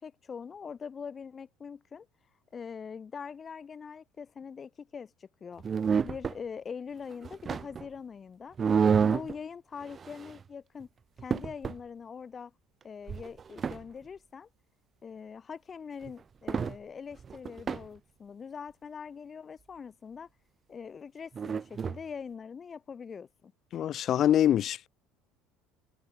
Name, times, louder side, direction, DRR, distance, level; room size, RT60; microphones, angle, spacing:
voice 1, 0.0-2.1 2.5-5.6 6.0-8.6 9.0-10.9 11.2-12.5 12.8-14.5 15.0-20.3 20.7-23.5, left 6 dB, 30° left, 4.3 m, -43 dB
sound 1, 5.6-6.4 7.1-7.9 8.6-9.3 9.8-10.4 10.8-10.9 11.2-11.8 13.1-13.8 16.0-16.1 16.5-16.8 17.1-17.9 21.3-22.0, right 6 dB, 30° right, 2.3 m, -29 dB
voice 2, 23.7-24.9, left 11 dB, 45° left, 1.6 m, -25 dB
cardioid pair, 125°, 0 cm